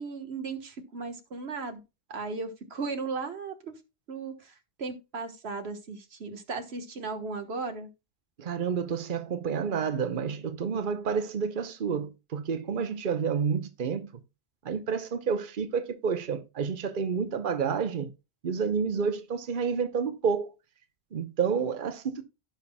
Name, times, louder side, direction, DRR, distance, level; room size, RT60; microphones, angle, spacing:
voice 1, 0.0-1.8 2.1-3.7 4.1-7.9, right 4 dB, 90° right, 1.6 m, -36 dB
voice 2, 8.4-14.1 14.6-18.1 18.4-20.5 21.1-22.2, right 6 dB, 55° right, 1.0 m, -29 dB
16.0 x 5.7 x 2.2 m
omnidirectional pair, 1.0 m